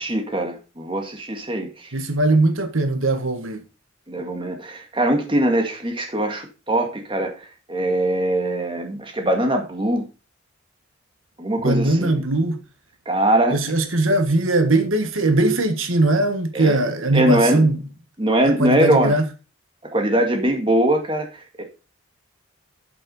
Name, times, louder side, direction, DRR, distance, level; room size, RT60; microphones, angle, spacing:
voice 1, 0.0-1.9 4.1-7.3 7.7-10.0 11.4-12.1 13.1-13.6 16.5-16.8 17.1-17.7 18.2-19.1 19.9-21.6, right 1 dB, 25° right, 2.1 m, -21 dB
voice 2, 1.9-3.6 11.6-12.6 13.5-17.8 18.4-19.3, right 2 dB, 75° right, 1.6 m, -20 dB
8.6 x 7.7 x 5.4 m
head